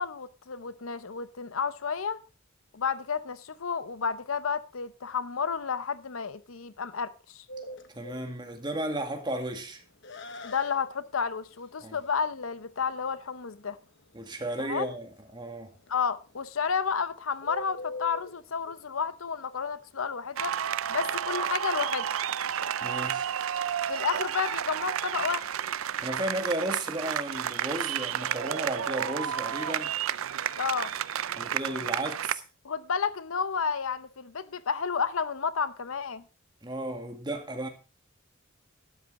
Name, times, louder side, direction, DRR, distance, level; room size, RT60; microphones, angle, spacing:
voice 1, 0.0-2.2 2.7-7.4 10.4-13.8 14.6-14.9 15.9-20.5 20.9-22.1 23.9-25.5 30.6-30.9 32.6-36.2, left 6 dB, 85° left, 0.7 m, -31 dB
Bird, 7.5-20.5, left 1 dB, 60° left, 1.2 m, -46 dB
voice 2, 7.9-9.8 11.8-12.0 14.1-15.8 22.8-23.3 26.0-29.9 31.4-32.4 36.6-37.7, right 1 dB, 20° right, 1.9 m, -34 dB
sound 1, 20.4-32.4, right 9 dB, 85° right, 0.5 m, -31 dB
12.5 x 11.0 x 3.7 m
head